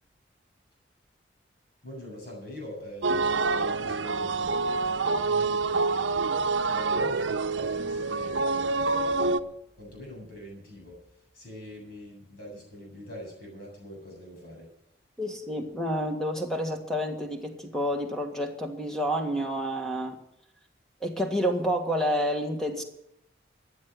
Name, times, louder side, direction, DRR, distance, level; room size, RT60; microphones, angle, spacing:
voice 1, 1.8-6.3 6.6-8.9 9.2-14.7, equal, 55° left, -1 dB, 7.8 m, -44 dB
sound 1, 3.0-9.4, right 3 dB, 80° right, 0.7 m, -27 dB
voice 2, 15.2-20.2 21.0-22.8, equal, 5° left, 3 dB, 1.7 m, -29 dB
15.5 x 9.8 x 6.7 m, 0.77 s
head